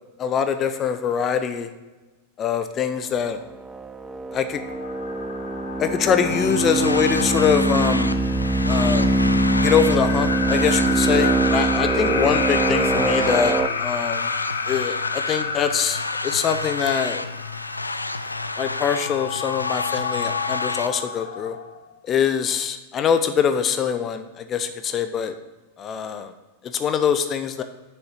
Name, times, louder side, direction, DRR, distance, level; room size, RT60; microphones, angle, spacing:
voice 1, 0.2-1.7 2.4-3.4 4.3-4.6 5.8-8.1 8.7-9.1 9.6-14.3 14.7-17.2 18.6-21.6 22.0-25.3 25.8-26.3 26.7-27.6, left 7 dB, 30° left, 9 dB, 0.6 m, -23 dB
sound 1, 3.6-13.7, right 2 dB, 10° right, 0.7 m, -23 dB
sound 2, 4.5-21.9, left 6 dB, 65° left, 0.7 m, -30 dB
sound 3, 6.3-20.9, left 2 dB, 80° left, 0.4 m, -30 dB
7.1 x 6.6 x 6.4 m, 1.2 s
figure-of-eight pair, 90°, 0 cm